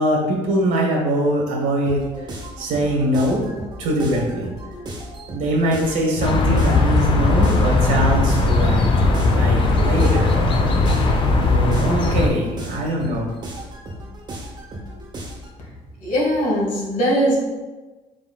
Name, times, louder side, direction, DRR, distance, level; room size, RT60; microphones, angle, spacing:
voice 1, 0.0-2.0 2.6-3.4 3.8-4.5 5.3-8.9 9.3-10.7 11.2-13.3, right 1 dB, 85° right, -1 dB, 1.2 m, -22 dB
sound 1, 1.9-15.6, right 1 dB, 35° right, 0.7 m, -35 dB
sound 2, 6.2-12.3, left 3 dB, 40° left, 0.5 m, -18 dB
voice 2, 16.0-17.4, equal, 75° left, -3 dB, 1.4 m, -20 dB
4.6 x 3.9 x 2.3 m, 1.2 s
cardioid pair, 130°, 13 cm